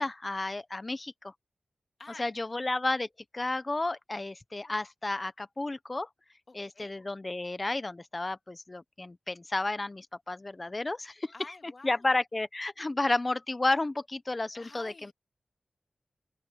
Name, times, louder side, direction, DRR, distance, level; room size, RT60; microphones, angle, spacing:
voice 1, 0.0-1.3 2.2-3.1 3.3-6.1 6.5-11.3 11.8-15.1, left 2 dB, 30° left, 0.9 m, -32 dB
voice 2, 6.5-6.9 11.3-12.1 14.5-15.1, left 3 dB, 50° left, 2.3 m, -49 dB
open air
wide cardioid pair, 95°, 0 cm